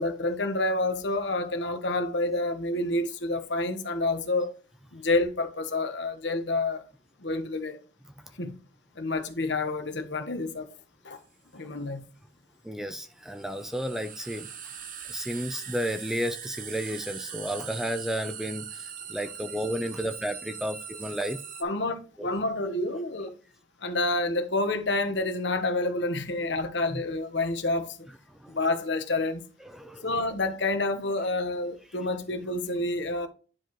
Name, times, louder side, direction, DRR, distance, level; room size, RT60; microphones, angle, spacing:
voice 1, 0.0-4.5 4.9-6.8 7.2-7.8 8.4-8.5 9.0-10.7 11.0-11.2 11.5-12.0 21.6-23.4 23.8-28.1 28.5-29.4 30.0-33.3, left 2 dB, 65° left, 1.2 m, -28 dB
sound 1, 11.1-11.2 13.3-21.6, right 8 dB, 45° right, 0.9 m, -41 dB
voice 2, 12.6-14.5 15.1-21.4 22.2-22.3 26.9-27.0 28.3-28.6 29.6-30.1, equal, ahead, 0.5 m, -32 dB
10.0 x 4.8 x 3.0 m
head